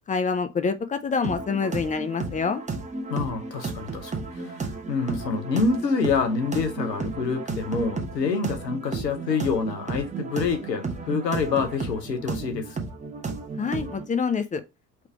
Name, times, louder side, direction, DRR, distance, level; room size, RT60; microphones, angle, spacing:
voice 1, 0.1-2.6 13.6-14.6, left 5 dB, 20° left, 0.4 m, -26 dB
sound 1, 1.2-14.0, right 4 dB, 15° right, 0.9 m, -33 dB
voice 2, 3.1-12.8, left 4 dB, 85° left, 0.9 m, -27 dB
3.3 x 3.2 x 4.6 m
figure-of-eight pair, 55°, 48 cm